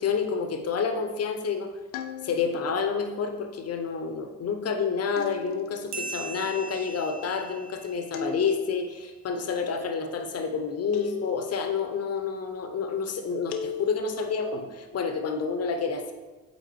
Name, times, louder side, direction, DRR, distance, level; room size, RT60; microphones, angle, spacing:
voice 1, 0.0-1.7 2.2-16.1, left 5 dB, 35° left, 5 dB, 0.8 m, -29 dB
sound 1, 1.9-2.8 5.2-6.0 8.1-9.0 10.9-11.8 13.5-14.4, left 7 dB, 70° left, 0.6 m, -36 dB
sound 2, 5.9-9.0, right 3 dB, 85° right, 0.6 m, -40 dB
8.0 x 4.4 x 3.1 m, 1.2 s
figure-of-eight pair, 45°, 45 cm